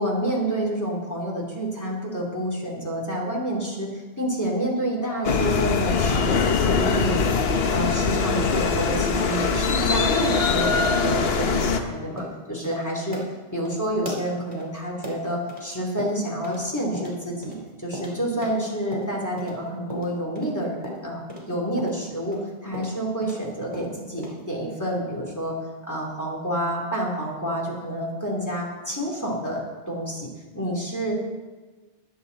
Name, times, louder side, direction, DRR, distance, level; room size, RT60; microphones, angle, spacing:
voice 1, 0.0-7.3 7.7-13.2 13.5-25.6 25.9-30.3 30.5-31.2, equal, 15° left, -3 dB, 2.8 m, -28 dB
sound 1, 5.2-11.8, left 5 dB, 65° left, 1.1 m, -22 dB
sound 2, 8.4-9.9 10.3-10.5 10.7-10.9 11.2-11.4 11.7-11.8 12.2-12.4 12.6-12.8 13.1-15.7 16.0-16.7 16.9-19.6 19.9-23.5 23.7-24.4, equal, 20° right, 3.1 m, -37 dB
21.5 x 7.6 x 4.0 m, 1.3 s
omnidirectional pair, 1.1 m